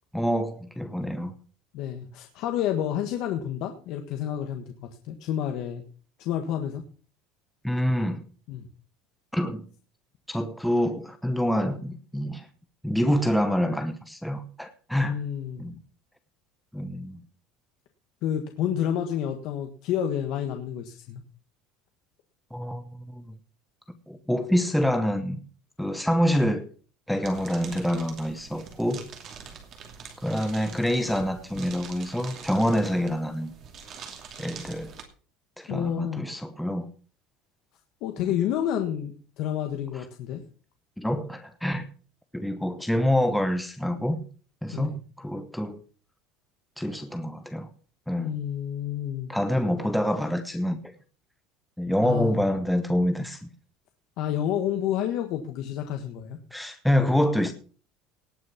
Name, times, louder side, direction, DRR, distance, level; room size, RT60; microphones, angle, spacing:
voice 1, 0.1-1.3 7.6-8.2 9.3-9.6 10.3-12.5 12.8-15.2 15.6-15.7 16.7-17.2 22.5-23.2 24.1-25.4 25.8-26.7 27.1-29.0 30.2-33.5 34.4-34.9 35.6-36.9 41.0-41.9 42.3-44.2 44.6-45.8 46.8-47.7 48.1-48.3 49.3-50.9 51.8-53.4 56.5-57.5, equal, ahead, 0.8 m, -26 dB
voice 2, 1.7-4.6 5.0-5.8 6.2-6.8 8.5-8.7 15.0-15.7 18.2-21.2 35.7-36.3 38.0-40.4 44.7-44.9 48.2-49.3 52.0-52.4 54.2-56.4, left 10 dB, 50° left, 1.4 m, -29 dB
sound 1, 27.2-35.0, right 6 dB, 35° right, 2.6 m, -44 dB
18.0 x 6.4 x 5.8 m
cardioid pair, 170°, 0 cm